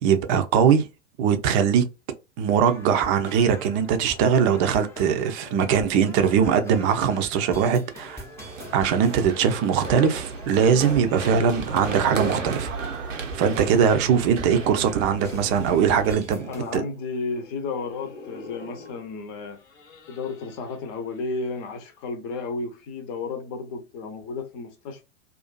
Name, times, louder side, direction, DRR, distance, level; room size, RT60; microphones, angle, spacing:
voice 1, 0.0-0.9 1.2-1.8 2.4-8.2 8.7-12.7 13.3-16.8, right 7 dB, 35° right, 0.5 m, -21 dB
sound 1, 2.4-16.8, left 1 dB, 5° left, 0.6 m, -43 dB
Run, 8.4-16.1, right 5 dB, 90° right, 0.7 m, -34 dB
sound 2, 9.6-12.8 13.8-14.9 16.1-16.2 16.4-16.5 16.8-17.0 17.3-17.5 17.8-19.1 19.5-21.2 21.6-21.8, left 5 dB, 80° left, 0.9 m, -41 dB
voice 2, 16.5-19.6 20.1-25.0, left 4 dB, 40° left, 0.8 m, -33 dB
2.5 x 2.4 x 2.2 m
figure-of-eight pair, 95°, 37 cm